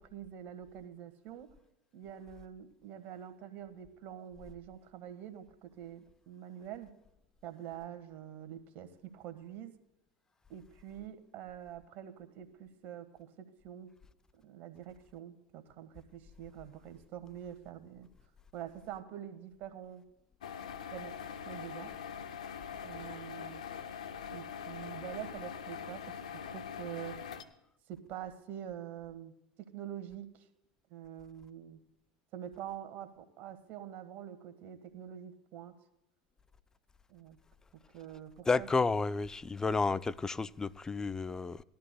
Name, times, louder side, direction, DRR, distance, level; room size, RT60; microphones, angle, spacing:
voice 1, 0.0-1.5 1.9-6.9 7.4-9.7 10.5-13.9 14.4-18.1 18.5-20.0 20.9-21.9 22.8-23.6 24.3-27.2 27.9-30.5 30.9-31.8 32.3-35.7 37.1-37.4 37.7-38.7, right 10 dB, 55° right, 1.4 m, -46 dB
sound 1, 20.4-27.4, left 7 dB, 85° left, 0.7 m, -43 dB
voice 2, 38.5-41.6, left 4 dB, 15° left, 0.4 m, -31 dB
19.5 x 13.0 x 2.2 m
hypercardioid pair, 85°, 4 cm